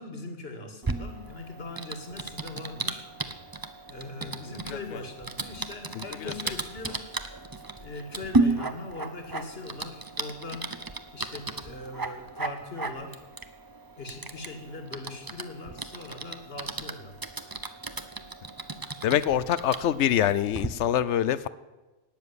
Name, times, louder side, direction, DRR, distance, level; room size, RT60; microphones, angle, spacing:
voice 1, 0.0-3.1 3.9-7.1 7.8-10.7 11.1-13.2 14.0-17.2, left 2 dB, 60° left, 5 dB, 2.3 m, -40 dB
Typing, 0.8-20.7, right 3 dB, 20° right, 0.8 m, -34 dB
voice 2, 4.5-5.0 5.9-6.5 19.0-21.5, left 10 dB, 80° left, 17 dB, 1.0 m, -26 dB
18.5 x 7.3 x 9.7 m, 1.2 s
omnidirectional pair, 1.2 m